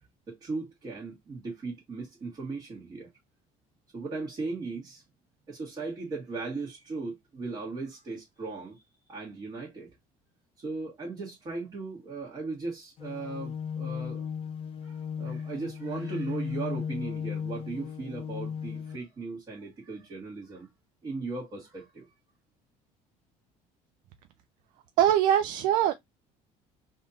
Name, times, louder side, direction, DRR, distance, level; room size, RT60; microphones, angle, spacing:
voice 1, 0.3-3.1 3.9-5.0 5.5-8.8 9.1-9.9 10.6-14.2 14.8-20.7 21.0-22.1, right 3 dB, 30° right, 1.5 m, -37 dB
sound 1, 13.0-19.0, left 7 dB, 40° left, 0.5 m, -36 dB
voice 2, 25.0-25.9, right 11 dB, 70° right, 0.4 m, -22 dB
3.5 x 2.6 x 3.9 m
cardioid pair, 160°, 14 cm